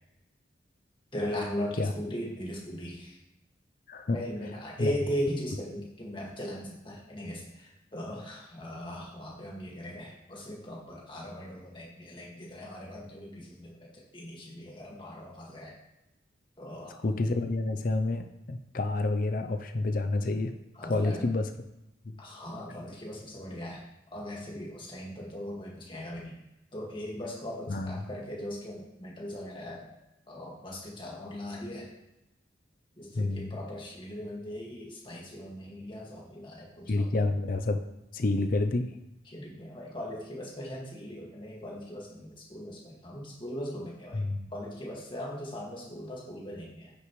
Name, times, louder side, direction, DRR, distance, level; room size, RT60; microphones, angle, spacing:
voice 1, 1.1-3.2 4.1-15.8 16.6-17.0 20.7-21.3 22.2-23.8 24.1-26.4 26.7-29.9 30.3-31.9 33.0-37.1 39.3-46.9, equal, 25° left, -3 dB, 1.9 m, -39 dB
voice 2, 17.0-20.5 20.8-21.4 22.1-22.2 27.7-28.0 33.1-33.5 36.9-37.8 38.1-38.9 44.1-44.5, left 2 dB, 45° left, 7 dB, 0.5 m, -29 dB
9.6 x 6.6 x 3.1 m, 0.92 s
head